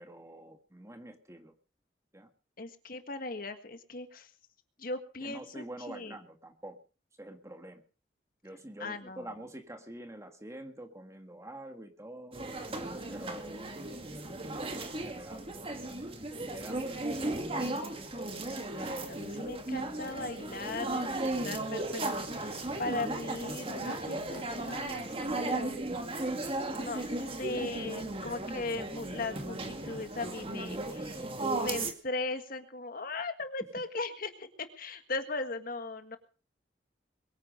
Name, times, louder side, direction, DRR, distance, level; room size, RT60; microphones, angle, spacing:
voice 1, 0.0-1.5 2.1-2.3 5.2-6.8 7.2-7.8 8.4-12.4 13.1-13.8 15.0-15.5 16.4-17.7, right 1 dB, 15° right, 6 dB, 1.7 m, -46 dB
voice 2, 2.6-4.3 4.8-6.1 8.8-9.3 18.8-25.8 26.7-27.1 27.4-31.3 31.5-36.2, left 3 dB, 50° left, 8 dB, 1.7 m, -38 dB
sound 1, 12.3-31.9, right 2 dB, 30° right, 2.1 m, -36 dB
22.5 x 9.6 x 5.2 m, 0.38 s
head